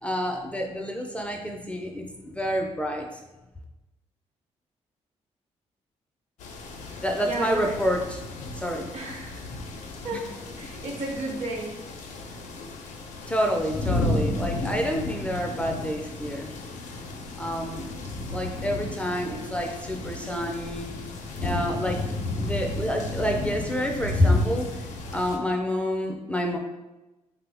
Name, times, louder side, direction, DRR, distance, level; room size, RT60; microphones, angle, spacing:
voice 1, 0.0-3.1 6.8-8.2 8.5-8.9 10.1-10.2 13.3-16.5 17.4-17.9 18.3-20.9 21.4-22.0 22.4-24.7 25.1-26.6, equal, 10° left, 2 dB, 0.3 m, -28 dB
sound 1, 6.4-25.4, left 2 dB, 85° left, 0.4 m, -33 dB
voice 2, 6.9-7.8 8.9-9.5 10.0-10.3 10.5-11.9, right 2 dB, 65° right, 0 dB, 0.8 m, -34 dB
3.2 x 2.0 x 3.3 m, 1.0 s
cardioid pair, 95°, 12 cm